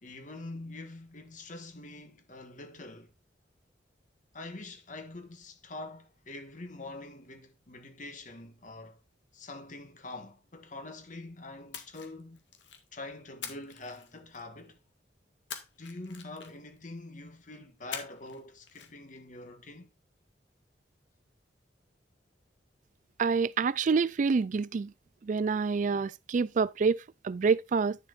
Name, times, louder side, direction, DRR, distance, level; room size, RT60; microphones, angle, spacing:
voice 1, 0.0-3.1 4.3-9.0 9.3-12.4 12.9-14.8 15.8-19.9, left 2 dB, 45° left, 1.6 m, -45 dB
Splash splatter, 11.7-12.9 13.4-14.6 15.5-16.8 17.9-18.4 18.7-18.9, left 7 dB, 85° left, 1.8 m, -44 dB
voice 2, 23.2-24.9 25.2-28.0, right 5 dB, 45° right, 0.3 m, -27 dB
10.5 x 7.1 x 2.5 m
head